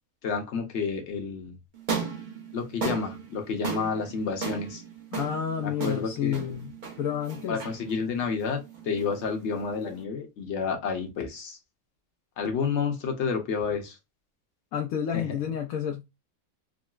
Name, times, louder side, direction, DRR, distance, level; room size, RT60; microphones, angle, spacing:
voice 1, 0.2-1.5 2.5-4.8 5.6-6.6 7.5-11.6 12.4-14.0 15.1-15.3, left 5 dB, 60° left, 1.1 m, -30 dB
sound 1, 1.7-10.0, right 5 dB, 40° right, 0.8 m, -36 dB
voice 2, 5.1-7.6 14.7-16.0, left 9 dB, 85° left, 1.0 m, -30 dB
3.8 x 2.1 x 2.3 m
omnidirectional pair, 1.4 m